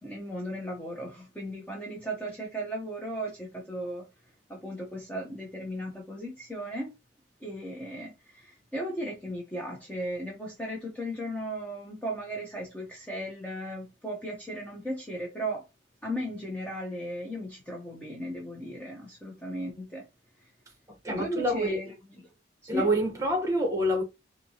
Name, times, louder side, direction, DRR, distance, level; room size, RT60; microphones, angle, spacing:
voice 1, 0.0-4.0 4.5-6.9 7.4-15.7 16.0-20.0 20.4-20.5 21.1-21.9 22.6-22.9, equal, 10° left, 0.7 m, -36 dB
voice 2, 20.9-21.8 22.7-24.0, equal, 15° right, 1.2 m, -27 dB
4.2 x 2.7 x 2.8 m
head